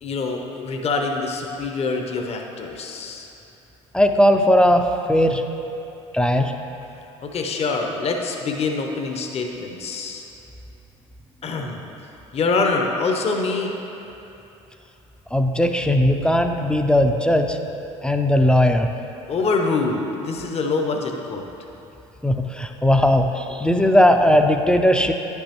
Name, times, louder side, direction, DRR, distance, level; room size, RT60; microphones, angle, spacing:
voice 1, 0.0-3.3 7.2-10.2 11.4-11.8 12.3-13.8 19.3-21.4, left 3 dB, 40° left, 2 dB, 0.8 m, -25 dB
voice 2, 3.9-5.4 6.1-6.5 15.3-17.6 18.0-18.9 22.2-25.1, left 1 dB, 5° left, 5 dB, 0.5 m, -18 dB
9.9 x 5.4 x 3.0 m, 2.9 s
hypercardioid pair, 60°, 15 cm